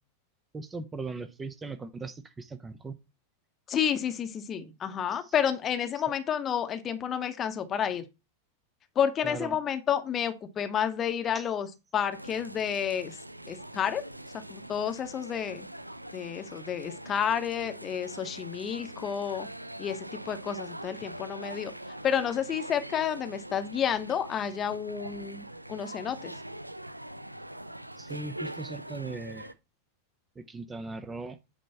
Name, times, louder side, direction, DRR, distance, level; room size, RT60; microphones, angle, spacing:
voice 1, 0.5-3.0 5.1-5.3 5.9-6.0 9.2-9.6 11.3-11.5 28.0-29.5 30.4-31.4, right 3 dB, 15° right, 0.7 m, -39 dB
voice 2, 3.7-8.0 9.0-11.7 11.9-13.2 13.5-14.0 14.5-15.7 16.1-19.5 19.8-21.7 22.0-26.3, left 8 dB, 25° left, 0.9 m, -30 dB
sound 1, 12.1-29.5, right 1 dB, 90° right, 0.5 m, -43 dB
8.6 x 3.2 x 5.5 m
figure-of-eight pair, 90°, 0 cm